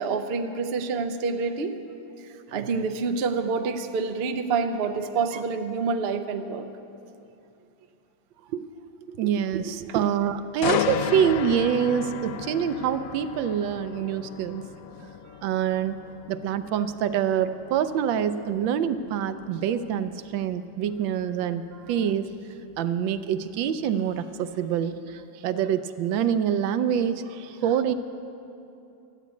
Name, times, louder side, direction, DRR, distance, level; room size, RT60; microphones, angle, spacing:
voice 1, 0.0-1.7 2.5-6.7, right 4 dB, 65° right, 7 dB, 0.6 m, -27 dB
voice 2, 9.1-14.7 15.4-16.0 16.3-22.3 22.8-25.0 25.4-27.2 27.6-27.9, right 8 dB, 85° right, 11 dB, 1.3 m, -26 dB
sound 1, 10.6-24.5 24.9-25.1, left 8 dB, 90° left, 0.7 m, -35 dB
13.5 x 8.2 x 9.4 m, 2.7 s
omnidirectional pair, 2.1 m